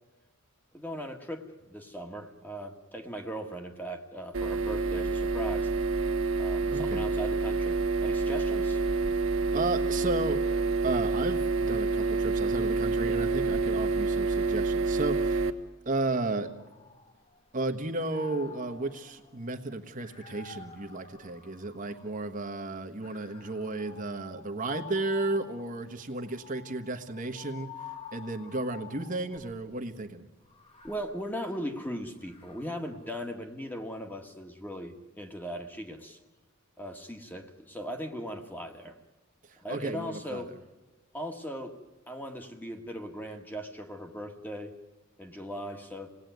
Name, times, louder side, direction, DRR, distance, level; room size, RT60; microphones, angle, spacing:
voice 1, 0.7-5.7 6.4-8.8 30.8-36.2 36.8-39.0 39.6-40.5 41.1-41.8 42.1-44.7 45.2-46.1, equal, 10° left, 5 dB, 1.6 m, -38 dB
sound 1, 4.3-15.5, right 3 dB, 65° right, 1.4 m, -28 dB
voice 2, 6.7-7.1 9.5-10.4 10.8-15.5 15.8-16.5 17.5-30.3 39.4-40.5, right 2 dB, 40° right, 5 dB, 1.3 m, -33 dB
sound 2, 16.4-17.5 17.9-22.3 23.0-29.7 30.4-33.0, left 6 dB, 25° left, 1.7 m, -49 dB
27.5 x 18.5 x 9.3 m, 1.2 s
head